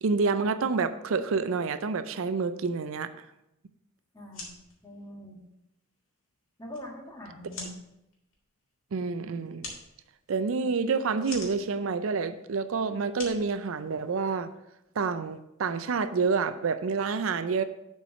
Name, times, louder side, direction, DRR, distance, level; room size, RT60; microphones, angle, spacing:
voice 1, 0.0-3.1 8.9-9.7 10.3-14.5 15.0-17.6, right 4 dB, 70° right, 11 dB, 0.5 m, -28 dB
voice 2, 4.1-4.5 4.8-5.4 6.6-7.8, equal, 20° left, -1 dB, 1.6 m, -43 dB
sound 1, 4.2-14.4, left 3 dB, 70° left, 2.2 m, -47 dB
7.0 x 4.7 x 6.8 m, 0.88 s
head